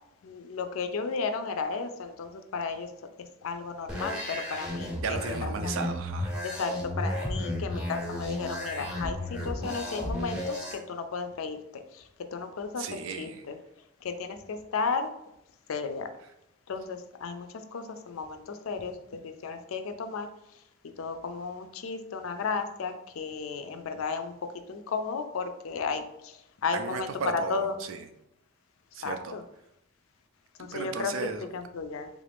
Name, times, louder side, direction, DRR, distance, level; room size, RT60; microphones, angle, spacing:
voice 1, 0.2-2.9 3.4-5.7 6.4-12.0 12.3-12.9 13.2-13.6 14.0-15.1 15.7-16.1 16.7-19.0 19.2-20.3 21.0-24.3 24.7-27.7 29.0-29.4 30.6-31.1 31.5-32.1, left 4 dB, 75° left, 8 dB, 0.4 m, -34 dB
sound 1, 3.9-10.7, left 1 dB, 5° right, 0.7 m, -33 dB
voice 2, 5.0-6.3 12.8-13.4 26.7-28.0 28.9-29.4 30.6-31.5, right 5 dB, 70° right, 7 dB, 0.4 m, -35 dB
3.5 x 2.5 x 3.4 m, 0.83 s
head